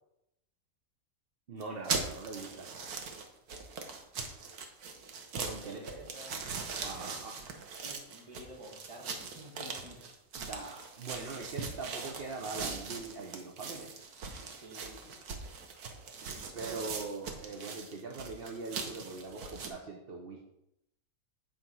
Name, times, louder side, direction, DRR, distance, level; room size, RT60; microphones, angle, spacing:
voice 1, 1.5-2.7 5.4-5.8 6.8-7.3 10.4-13.9 16.5-20.4, right 3 dB, 45° right, 1 dB, 1.0 m, -42 dB
sound 1, 1.6-19.7, right 5 dB, 85° right, 1.5 m, -41 dB
voice 2, 5.3-6.5 6.7-7.1 7.8-10.0 14.5-15.2, right 1 dB, 20° right, 0 dB, 1.5 m, -50 dB
9.0 x 4.4 x 5.5 m, 0.82 s
omnidirectional pair, 1.6 m